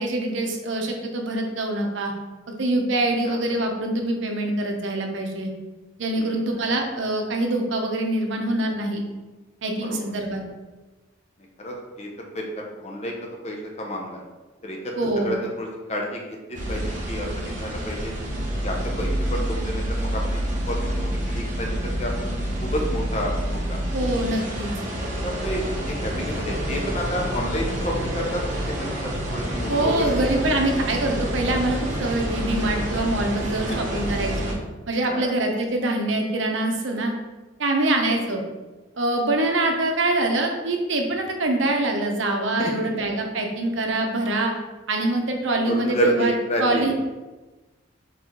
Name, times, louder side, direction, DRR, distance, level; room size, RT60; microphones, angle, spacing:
voice 1, 0.0-2.1 2.5-5.5 6.0-9.0 9.6-10.4 15.0-15.4 23.9-24.7 29.7-34.5 34.9-37.1 37.6-38.4 39.0-44.5 44.9-46.9, right 2 dB, 70° right, 2 dB, 0.7 m, -24 dB
voice 2, 11.6-12.1 12.3-13.2 13.4-14.2 14.6-14.9 15.2-16.4 16.7-18.1 18.6-22.1 22.6-23.8 25.1-28.4 28.7-30.1 33.7-33.8 35.1-35.3 38.1-38.2 42.6-42.7 45.6-46.9, equal, 35° left, 0 dB, 0.7 m, -29 dB
sound 1, 16.5-34.5, equal, 35° right, 0.8 m, -28 dB
4.5 x 3.1 x 3.7 m, 1.2 s
head